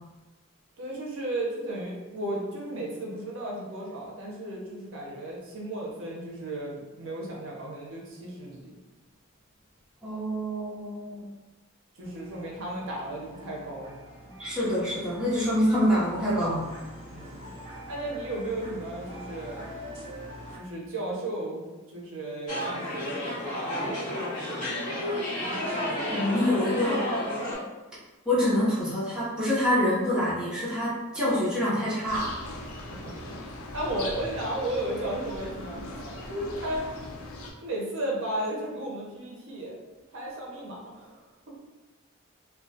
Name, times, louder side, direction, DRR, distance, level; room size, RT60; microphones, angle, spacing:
voice 1, 0.8-8.7 12.0-14.0 14.3-14.4 17.1-17.5 17.9-19.6 20.5-21.6 21.9-23.4 33.0-33.4 33.7-36.9 37.6-39.8 40.1-41.2, right 1 dB, 60° right, -3 dB, 0.5 m, -34 dB
voice 2, 10.0-11.2 14.4-16.7 26.1-27.0 28.3-32.3, left 1 dB, 5° right, -10 dB, 0.7 m, -26 dB
sound 1, 12.0-20.6, equal, 30° right, 1.0 m, -44 dB
sound 2, 22.5-27.6, left 1 dB, 35° left, 1.2 m, -31 dB
sound 3, 32.0-37.5, left 2 dB, 85° left, 0.4 m, -40 dB
2.2 x 2.2 x 2.6 m, 1.1 s
head